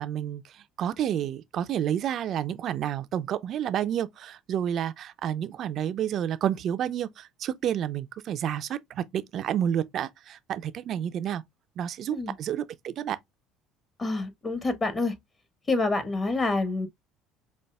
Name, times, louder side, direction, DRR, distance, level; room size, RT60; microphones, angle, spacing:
voice 1, 0.0-11.4 11.8-13.2, right 10 dB, 55° right, 0.5 m, -30 dB
voice 2, 14.0-15.1 15.7-16.9, left 3 dB, 30° left, 1.4 m, -27 dB
5.4 x 2.5 x 2.3 m
supercardioid pair, 85°, 0 cm